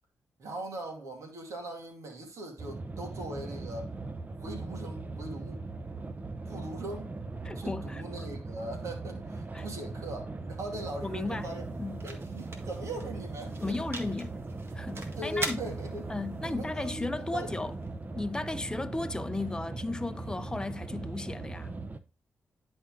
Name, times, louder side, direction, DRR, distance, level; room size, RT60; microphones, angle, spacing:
voice 1, 0.4-3.9 4.3-5.6 6.5-7.1 7.6-11.7 12.0-13.8 15.2-16.1 16.4-17.5, right 1 dB, 70° right, 2.4 m, -40 dB
sound 1, 2.6-22.0, right 3 dB, 30° right, 0.8 m, -39 dB
voice 2, 7.4-8.0 9.5-9.6 11.0-11.5 11.8-12.1 13.6-14.4 14.7-15.6 16.1-17.7 18.1-21.7, left 2 dB, 15° left, 0.6 m, -35 dB
sound 2, 10.4-18.5, right 2 dB, 45° right, 1.7 m, -44 dB
10.5 x 4.4 x 3.7 m
cardioid pair, 60°, 5 cm